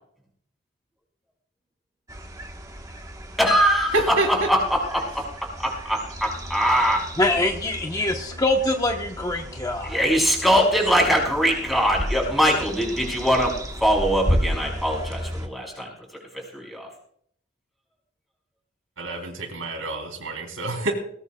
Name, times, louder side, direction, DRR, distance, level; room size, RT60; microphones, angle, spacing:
sound 1, 2.1-15.5, equal, 15° right, 1.3 m, -33 dB
voice 1, 3.4-7.1 9.8-13.5 13.8-15.9 16.3-16.9, equal, ahead, -2 dB, 5.3 m, -22 dB
voice 2, 7.2-10.0, left 2 dB, 20° left, 3 dB, 1.0 m, -24 dB
voice 3, 19.0-20.9, right 3 dB, 85° right, 4 dB, 3.3 m, -29 dB
21.5 x 18.0 x 2.3 m, 0.65 s
head